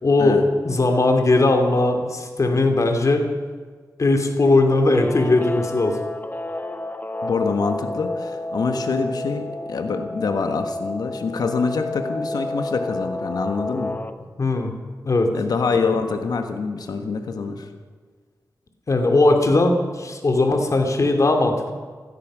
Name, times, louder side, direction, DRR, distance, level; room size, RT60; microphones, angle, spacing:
voice 1, 0.0-0.4 0.6-3.3 4.0-6.0 14.4-14.7 15.0-15.3 18.9-21.7, left 2 dB, 55° left, 5 dB, 2.6 m, -19 dB
Guitar, 4.7-14.1, left 1 dB, 30° left, 1.2 m, -31 dB
voice 2, 7.2-14.0 15.3-17.7, left 4 dB, 85° left, 7 dB, 1.4 m, -25 dB
16.5 x 12.5 x 6.2 m, 1.5 s
cardioid pair, 60°, 6 cm